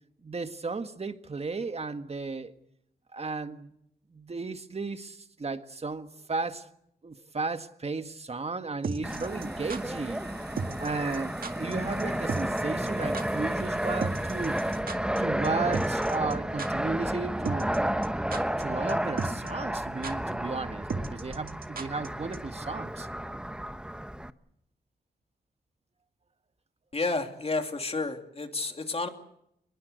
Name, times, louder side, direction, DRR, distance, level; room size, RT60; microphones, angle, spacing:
voice 1, 0.2-2.5 3.1-3.7 4.1-6.6 7.0-10.2 10.8-14.6 15.2-17.8 18.6-23.1, right 3 dB, 40° right, 1.7 m, -34 dB
sound 1, 8.8-9.8 10.6-10.9 11.1-11.2 11.4-11.7 12.0-12.1 12.3-12.6 12.9-13.0 13.1-13.2 14.0-15.2 15.4-15.5 15.7-16.3 16.6-16.7 17.5-17.8 18.0-18.6 18.9-19.0 19.2-19.5 19.7-19.8 20.0-20.1 20.9-22.1 22.3-22.4, right 4 dB, 60° right, 2.0 m, -34 dB
Fixed-wing aircraft airplane, 9.0-24.3, right 1 dB, 5° right, 1.0 m, -32 dB
sound 2, 9.0-14.8, right 5 dB, 80° right, 7.3 m, -50 dB
voice 2, 26.9-29.1, left 3 dB, 35° left, 2.8 m, -31 dB
23.5 x 21.5 x 8.1 m
cardioid pair, 75°, 17 cm